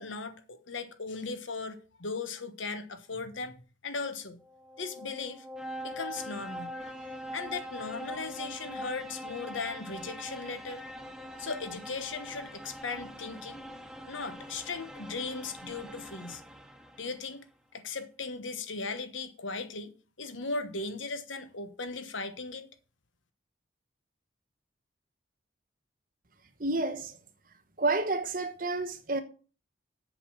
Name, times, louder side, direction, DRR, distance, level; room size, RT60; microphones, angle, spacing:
voice 1, 0.0-3.6 3.8-4.4 4.8-5.4 5.8-10.8 11.4-13.6 14.1-16.4 17.0-17.4 17.7-22.7, left 4 dB, 80° left, 1.2 m, -38 dB
sound 1, 4.4-17.2, equal, 5° right, 0.9 m, -43 dB
voice 2, 26.6-27.2 27.8-29.2, right 2 dB, 45° right, 1.2 m, -30 dB
7.9 x 6.8 x 6.3 m
head